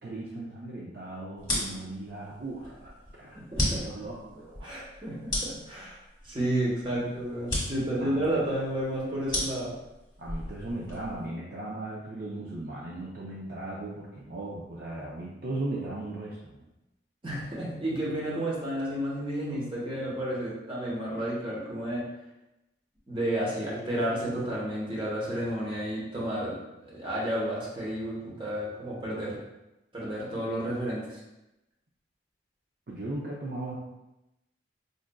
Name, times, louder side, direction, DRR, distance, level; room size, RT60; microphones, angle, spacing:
voice 1, 0.0-3.4 3.7-4.8 8.0-8.3 10.2-16.7 32.9-33.8, right 2 dB, 50° right, -5 dB, 0.5 m, -37 dB
sound 1, 1.4-11.3, left 1 dB, 20° left, 1.2 m, -35 dB
voice 2, 3.3-4.0 4.6-6.0 6.2-9.7 17.2-22.1 23.1-26.6 26.9-29.4 29.9-31.2, right 1 dB, 25° right, -5 dB, 0.9 m, -31 dB
5.1 x 2.4 x 2.2 m, 0.95 s
head